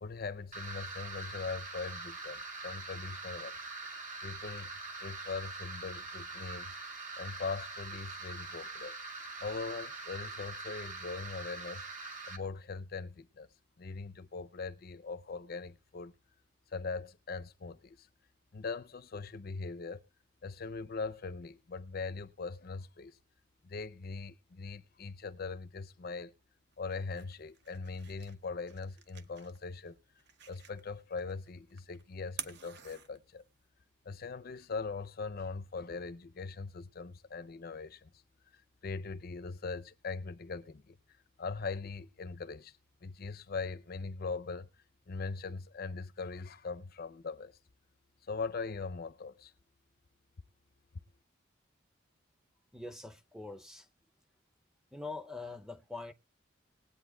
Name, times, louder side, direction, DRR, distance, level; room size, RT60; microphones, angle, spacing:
voice 1, 0.0-3.6 4.2-4.7 5.0-6.8 7.2-9.0 9.4-11.9 12.3-13.5 13.8-16.1 16.7-18.1 18.5-20.0 20.4-23.2 23.6-26.3 26.8-30.0 30.5-33.4 34.0-38.1 38.5-41.0 41.4-44.7 45.1-47.6 48.3-49.5, left 4 dB, 50° left, 0.6 m, -41 dB
sound 1, 0.5-12.4, right 3 dB, 40° right, 1.8 m, -43 dB
sound 2, 26.7-33.7, right 8 dB, 60° right, 1.0 m, -51 dB
voice 2, 52.7-53.9 54.9-56.1, left 3 dB, 5° right, 0.6 m, -43 dB
20.5 x 8.5 x 2.3 m
head